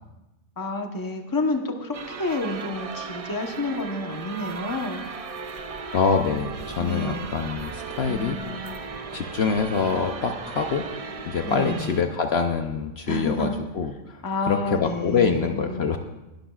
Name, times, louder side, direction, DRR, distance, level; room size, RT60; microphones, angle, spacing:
voice 1, 0.6-5.0 6.8-7.3 8.1-8.8 11.4-12.2 13.1-13.6 14.2-15.9, left 2 dB, 20° left, 4 dB, 0.9 m, -30 dB
sound 1, 1.9-12.0, right 5 dB, 55° right, 0.3 m, -36 dB
sound 2, 5.0-11.4, equal, 35° right, 5.5 m, -49 dB
voice 2, 5.9-8.4 9.1-10.8 11.3-13.5 13.7-16.0, left 5 dB, 60° left, 5 dB, 0.9 m, -25 dB
21.0 x 12.0 x 2.4 m, 1.0 s
omnidirectional pair, 1.3 m